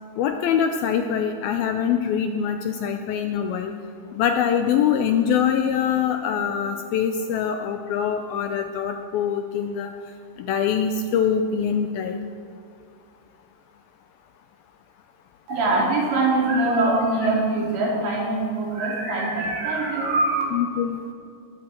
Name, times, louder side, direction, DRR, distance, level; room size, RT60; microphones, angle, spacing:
voice 1, 0.2-3.7 4.1-9.9 10.4-12.2 16.9-17.0 20.5-21.0, left 8 dB, 85° left, 6 dB, 2.2 m, -24 dB
voice 2, 15.5-20.4, right 2 dB, 85° right, -4 dB, 5.7 m, -23 dB
19.5 x 15.0 x 4.5 m, 2.5 s
omnidirectional pair, 4.9 m